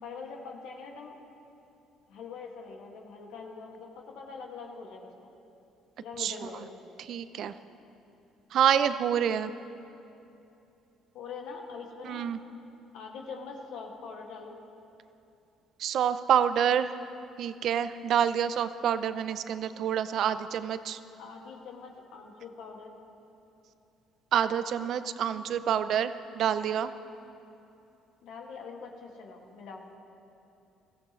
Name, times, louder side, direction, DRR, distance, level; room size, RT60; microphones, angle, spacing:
voice 1, 0.0-1.1 2.1-5.1 6.0-6.8 11.1-12.3 12.9-14.6 21.2-23.0 28.2-29.9, left 5 dB, 80° left, 0 dB, 2.0 m, -43 dB
voice 2, 7.0-7.5 8.5-9.5 12.0-12.4 15.8-16.9 17.4-21.0 24.3-26.9, right 9 dB, 65° right, 12 dB, 0.5 m, -27 dB
20.5 x 15.0 x 3.1 m, 2.8 s
supercardioid pair, 85°, 0 cm